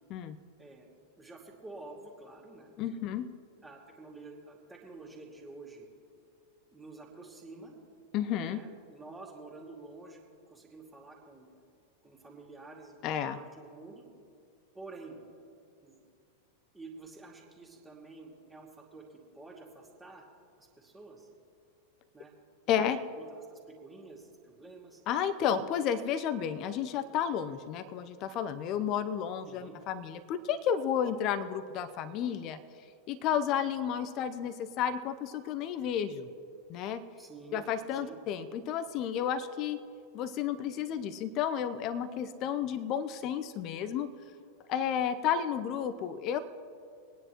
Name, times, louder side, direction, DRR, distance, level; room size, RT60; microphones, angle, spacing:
voice 1, 0.6-0.9 1.2-3.1 3.6-5.9 6.7-7.7 8.4-10.2 10.5-11.5 12.0-14.0 14.7-15.2 15.8-16.0 16.7-20.3 20.6-21.3 22.1-22.4 22.7-22.8 23.2-25.0 29.5-29.8 37.2-37.6 37.9-38.2, right 3 dB, 10° right, -2 dB, 2.4 m, -49 dB
voice 2, 2.8-3.3 8.1-8.6 13.0-13.4 22.7-23.0 25.1-32.6 33.1-36.3 36.7-37.0 37.5-39.8 40.1-44.1 44.7-46.4, left 8 dB, 40° left, 12 dB, 0.7 m, -32 dB
24.5 x 9.9 x 3.1 m, 2.4 s
figure-of-eight pair, 90°, 0 cm